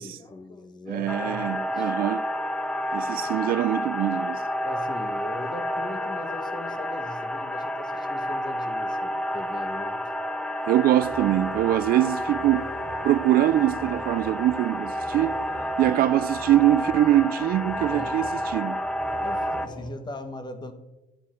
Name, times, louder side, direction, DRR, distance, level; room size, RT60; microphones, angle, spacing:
voice 1, 0.0-1.9 2.9-3.3 4.6-10.0 12.0-12.1 17.9-18.2 19.2-20.7, left 2 dB, 25° left, 1.2 m, -40 dB
voice 2, 0.9-2.3 2.9-4.4 10.7-12.7 13.0-15.3 15.8-18.8, right 13 dB, 60° right, 0.4 m, -23 dB
sound 1, 1.1-19.7, equal, 5° left, 0.6 m, -30 dB
sound 2, 10.9-19.9, left 1 dB, 90° left, 4.5 m, -43 dB
12.0 x 8.4 x 4.3 m
cardioid pair, 110°, 17 cm